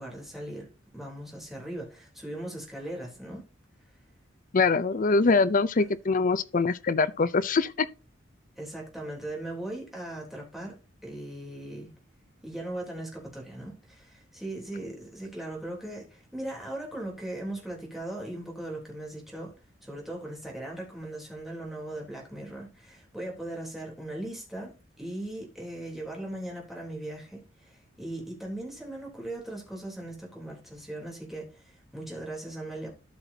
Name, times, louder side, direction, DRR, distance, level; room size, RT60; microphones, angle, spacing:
voice 1, 0.0-3.5 5.3-5.4 8.6-11.9 12.4-19.5 19.8-32.9, right 1 dB, ahead, 3.4 m, -39 dB
voice 2, 4.5-7.9, left 4 dB, 45° left, 0.5 m, -23 dB
13.0 x 6.0 x 2.8 m
head